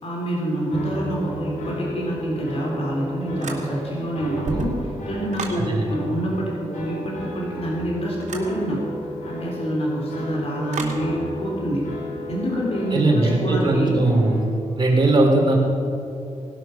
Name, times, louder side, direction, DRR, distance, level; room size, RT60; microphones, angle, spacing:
voice 1, 0.0-8.9 9.3-11.9 12.3-14.0, right 1 dB, 55° left, -3 dB, 3.7 m, -26 dB
sound 1, 0.7-14.4, left 1 dB, 90° left, 3.5 m, -34 dB
sound 2, 3.4-4.0 4.3-5.7 8.2-8.5 10.7-11.0, right 3 dB, 70° right, 2.6 m, -32 dB
voice 2, 12.9-14.4 14.8-15.6, right 2 dB, 40° right, 0 dB, 3.4 m, -19 dB
19.0 x 12.5 x 5.8 m, 2.8 s
wide cardioid pair, 115°, 13 cm